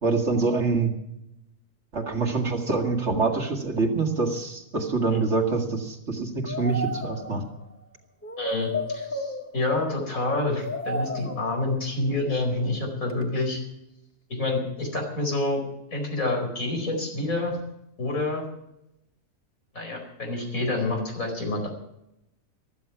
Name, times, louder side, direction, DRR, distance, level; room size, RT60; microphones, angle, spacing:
voice 1, 0.0-0.9 1.9-7.4, right 3 dB, 55° right, 3 dB, 2.4 m, -25 dB
sound 1, 6.4-7.6 8.2-9.9 10.5-11.7 13.1-13.2, left 1 dB, 10° left, 1.4 m, -33 dB
voice 2, 8.4-13.6 14.3-15.6 15.9-17.6 18.0-18.5 19.7-21.7, left 2 dB, 85° left, 1 dB, 5.1 m, -28 dB
15.0 x 13.5 x 6.0 m, 0.82 s
omnidirectional pair, 1.4 m